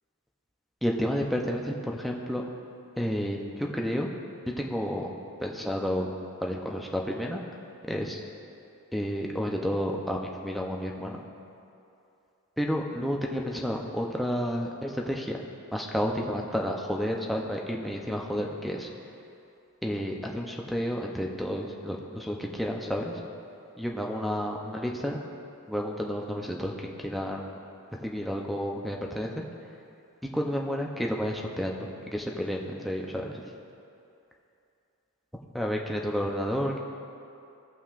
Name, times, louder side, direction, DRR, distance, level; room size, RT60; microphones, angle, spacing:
voice 1, 0.8-2.4 3.0-4.1 4.6-5.1 5.4-6.1 6.4-7.4 7.9-8.2 8.9-11.2 12.6-15.4 15.7-18.9 19.8-23.1 23.8-25.2 25.7-27.6 28.0-29.4 30.3-33.4 35.5-36.8, equal, ahead, -1 dB, 0.6 m, -31 dB
16.0 x 5.8 x 2.5 m, 2.7 s
head